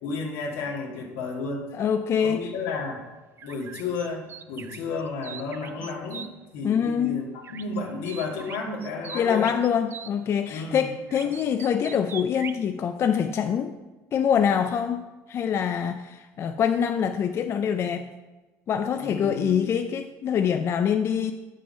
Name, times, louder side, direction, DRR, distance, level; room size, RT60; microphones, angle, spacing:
voice 1, 0.0-1.7 2.2-3.0 3.4-9.5 10.5-10.9 11.2-11.3 19.0-19.6, left 3 dB, 85° left, 0 dB, 1.9 m, -32 dB
voice 2, 1.7-2.5 6.6-7.2 9.1-13.7 14.1-18.1 18.7-21.3, left 8 dB, 45° left, 8 dB, 0.5 m, -25 dB
sound 1, 3.4-6.3 7.4-7.8 8.1-10.1 11.1-12.6, right 7 dB, 40° right, 0.5 m, -41 dB
7.8 x 6.3 x 5.4 m, 1.2 s
supercardioid pair, 110°, 6 cm